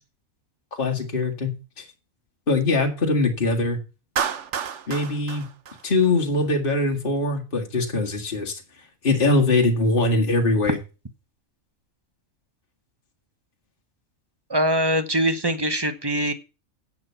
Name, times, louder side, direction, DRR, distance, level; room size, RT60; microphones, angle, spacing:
voice 1, 0.7-1.5 1.8-1.9 2.5-3.8 4.9-5.5 5.8-8.6 9.0-10.8, left 2 dB, 40° left, 2 dB, 1.9 m, -22 dB
Clapping, 4.2-6.5, right 7 dB, 60° right, 1.1 m, -30 dB
voice 2, 14.5-16.3, equal, 20° right, 10 dB, 0.9 m, -22 dB
10.5 x 7.4 x 5.7 m, 0.31 s
omnidirectional pair, 1.5 m